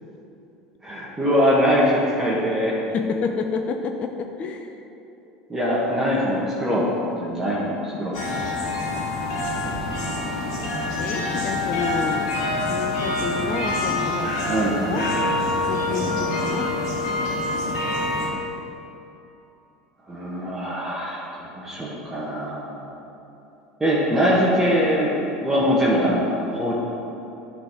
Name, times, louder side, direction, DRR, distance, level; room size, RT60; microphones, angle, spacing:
voice 1, 0.8-2.8 5.5-8.2 14.5-15.0 15.9-16.6 20.1-22.9 23.8-26.8, equal, 15° right, -7 dB, 1.6 m, -23 dB
voice 2, 2.9-4.8 11.0-12.3 12.7-14.6 14.9-15.0 15.7-16.1 16.5-16.8, left 5 dB, 40° left, 6 dB, 0.5 m, -29 dB
sound 1, 8.1-18.3, left 2 dB, 65° left, 1.5 m, -26 dB
10.5 x 4.0 x 5.2 m, 2.9 s
hypercardioid pair, 75°, 3 cm